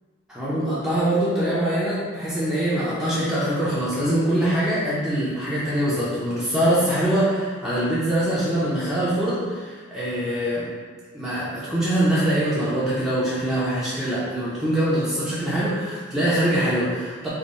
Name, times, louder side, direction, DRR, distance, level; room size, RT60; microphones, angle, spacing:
voice 1, 0.3-10.7 11.1-17.3, right 1 dB, 5° right, -10 dB, 0.6 m, -23 dB
3.8 x 2.2 x 3.8 m, 1.5 s
head